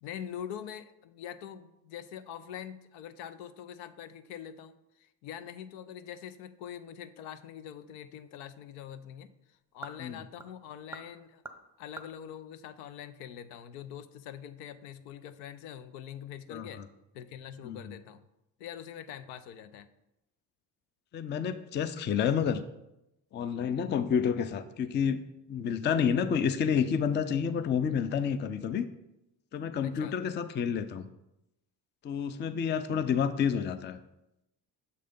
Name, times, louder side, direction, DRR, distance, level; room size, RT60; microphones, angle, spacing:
voice 1, 0.0-11.4 11.8-16.8 17.1-18.2 18.6-19.9 29.8-30.2, left 9 dB, 75° left, 12 dB, 0.6 m, -44 dB
sound 1, 7.7-13.5, right 3 dB, 5° right, 0.7 m, -51 dB
voice 2, 21.1-22.6 23.3-25.2 25.5-28.8 29.5-31.1 32.0-34.0, left 7 dB, 25° left, 11 dB, 0.4 m, -29 dB
6.7 x 3.3 x 5.2 m, 0.89 s
hypercardioid pair, 55°, 50 cm